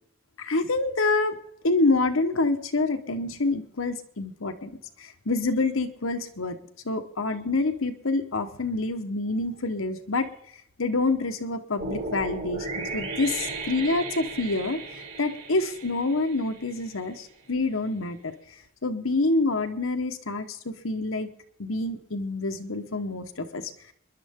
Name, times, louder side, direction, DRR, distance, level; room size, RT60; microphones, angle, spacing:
voice 1, 0.4-1.4 1.6-6.6 6.8-10.3 10.8-14.8 15.2-18.3 18.8-21.3 21.6-23.9, left 3 dB, 85° left, 7 dB, 1.2 m, -27 dB
sound 1, 11.8-17.0, right 3 dB, 55° right, 4.6 m, -35 dB
27.0 x 11.0 x 3.7 m, 0.70 s
head